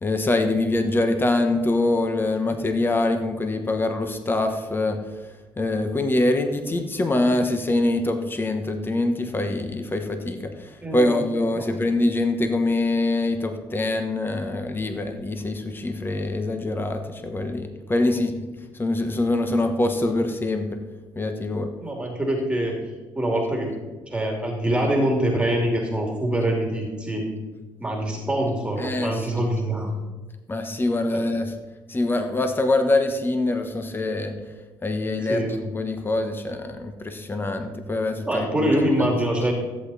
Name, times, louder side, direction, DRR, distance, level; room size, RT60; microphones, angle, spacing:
voice 1, 0.0-5.0 5.6-18.5 18.8-20.8 21.1-21.7 28.8-29.5 30.5-31.5 31.9-34.4 34.8-38.7 39.0-39.1, left 2 dB, 25° left, 6 dB, 1.3 m, -24 dB
voice 2, 10.8-11.2 11.5-11.7 21.8-22.7 23.1-23.7 24.1-27.3 27.8-29.9 31.1-31.2 35.3-35.6 38.3-39.5, right 1 dB, 10° right, 0 dB, 2.7 m, -24 dB
15.0 x 8.3 x 4.2 m, 1.2 s
supercardioid pair, 80°, 9 cm